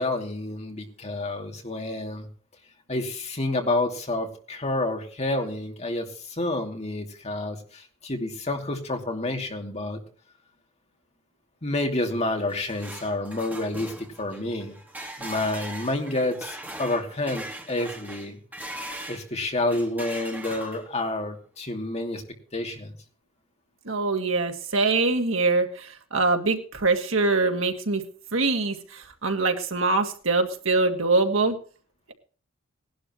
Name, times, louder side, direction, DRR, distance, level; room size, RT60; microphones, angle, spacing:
voice 1, 0.0-2.3 2.9-10.0 11.6-13.9 14.2-14.7 15.2-18.4 19.1-22.2 22.5-22.9, left 2 dB, 30° left, 3 dB, 2.7 m, -29 dB
sound 1, 12.3-19.3 19.7-21.1, right 1 dB, 10° right, 2.1 m, -39 dB
voice 2, 23.9-28.0 28.3-31.6, right 3 dB, 70° right, 5 dB, 2.1 m, -24 dB
19.0 x 11.5 x 3.1 m, 0.41 s
head